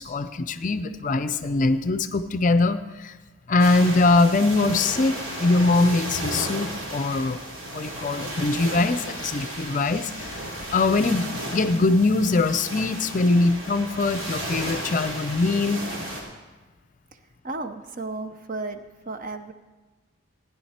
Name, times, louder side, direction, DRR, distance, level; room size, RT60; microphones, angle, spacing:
voice 1, 0.0-3.1 3.5-7.4 7.7-15.8, left 3 dB, 40° left, 11 dB, 0.5 m, -22 dB
sound 1, 3.6-16.2, right 1 dB, 70° right, 3.0 m, -34 dB
voice 2, 17.4-19.5, right 2 dB, 40° right, 8 dB, 0.7 m, -34 dB
16.0 x 9.8 x 4.3 m, 1.2 s
head